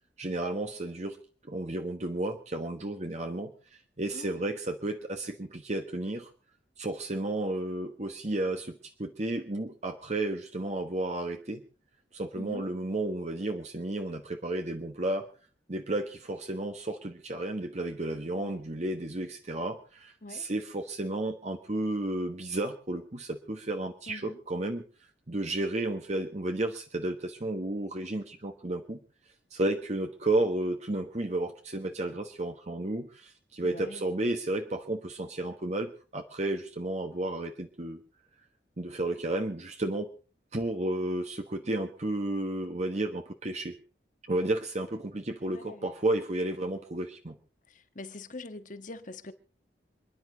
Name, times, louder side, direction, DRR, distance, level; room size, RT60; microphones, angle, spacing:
voice 1, 0.2-1.2 1.4-6.3 6.8-11.6 12.1-15.3 15.7-24.8 25.3-29.0 29.5-38.0 38.8-40.1 40.5-43.8 44.2-47.4, right 1 dB, 40° right, 1.3 m, -32 dB
voice 2, 24.1-24.4 33.6-34.0 45.5-45.8 47.9-49.3, left 2 dB, 50° left, 1.4 m, -43 dB
27.5 x 10.5 x 4.0 m
head